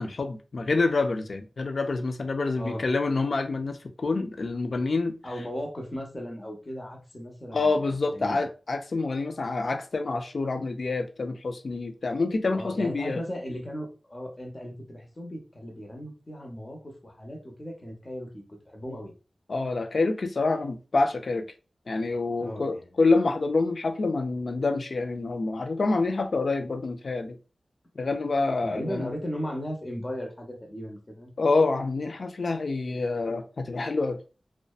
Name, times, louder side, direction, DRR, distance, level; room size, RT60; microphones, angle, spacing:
voice 1, 0.0-5.1 7.5-13.2 19.5-21.5 21.9-27.4 28.0-29.1 31.4-34.2, left 3 dB, 70° left, 0.3 m, -27 dB
voice 2, 5.2-8.4 12.5-19.1 22.4-22.9 28.6-31.3, equal, 35° left, 0.8 m, -37 dB
2.6 x 2.1 x 2.3 m
wide cardioid pair, 70°, 0 cm